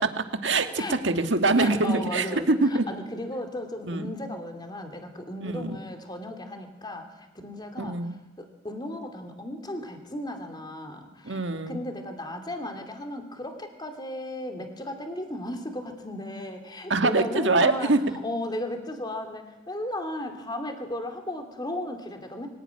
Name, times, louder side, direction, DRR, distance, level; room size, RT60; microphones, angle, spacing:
voice 1, 0.0-2.9 3.9-4.1 5.4-5.8 7.8-8.1 11.3-11.8 16.9-18.0, right 3 dB, 70° right, 7 dB, 1.7 m, -24 dB
voice 2, 1.6-8.0 8.4-17.9 18.2-22.5, left 1 dB, 25° left, 5 dB, 2.9 m, -35 dB
24.0 x 17.0 x 9.8 m, 1.0 s
head